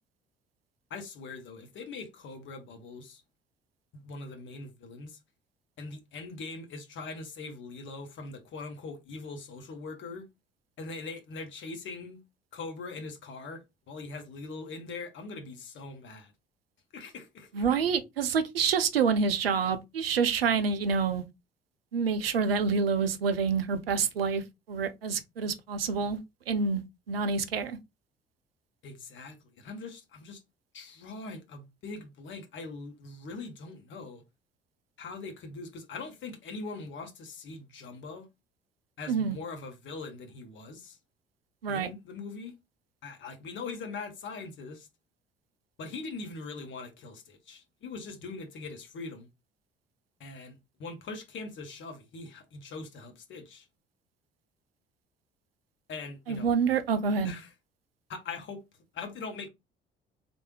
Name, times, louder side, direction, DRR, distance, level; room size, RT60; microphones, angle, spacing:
voice 1, 0.9-3.2 3.9-5.2 5.8-10.3 10.8-12.2 12.5-16.3 16.9-17.7 28.8-30.4 30.7-34.2 35.0-38.3 39.0-41.0 41.7-42.5 43.0-44.9 45.8-49.3 50.2-53.7 55.9-56.5 57.2-57.5 58.1-58.6 58.9-59.5, left 3 dB, 40° left, 1.0 m, -42 dB
voice 2, 17.5-21.2 21.9-26.2 26.5-26.8 27.1-27.8 39.1-39.4 41.6-41.9 56.3-57.3, right 5 dB, 80° right, 0.5 m, -27 dB
3.2 x 2.5 x 2.9 m
figure-of-eight pair, 55°, 29 cm